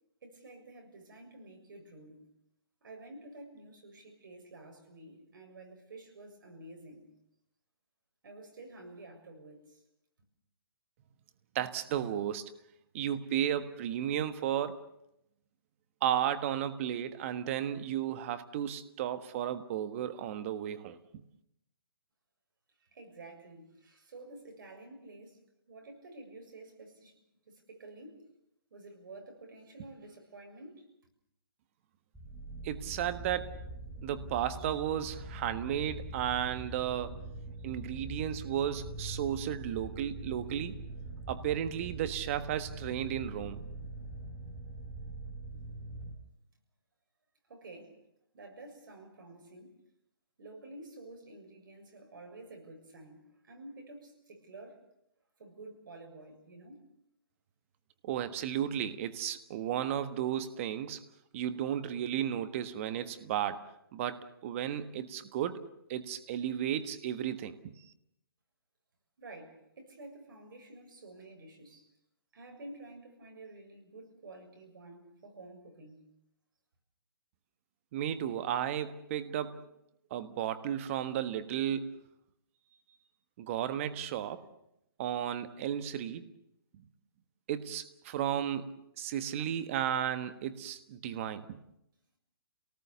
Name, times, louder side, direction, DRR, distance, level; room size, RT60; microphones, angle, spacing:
voice 1, 0.2-2.2 2.8-7.1 8.2-9.8 22.8-25.4 25.7-27.2 27.5-28.2 28.7-30.8 47.5-48.0 48.3-49.7 50.4-54.8 55.4-56.9 69.2-71.9 72.3-76.0, right 2 dB, 65° right, 3 dB, 7.0 m, -50 dB
voice 2, 11.5-12.5 12.9-14.8 16.0-21.2 32.6-33.5 34.0-37.2 37.6-40.8 41.3-43.6 58.0-61.0 61.3-67.8 77.9-79.7 80.1-82.0 83.4-84.4 85.0-86.2 86.7-86.8 87.5-91.6, right 10 dB, 35° right, 11 dB, 1.4 m, -34 dB
sound 1, 32.1-46.1, right 2 dB, 5° right, 4.0 m, -43 dB
28.5 x 19.0 x 7.0 m, 0.80 s
hypercardioid pair, 155°, 12 cm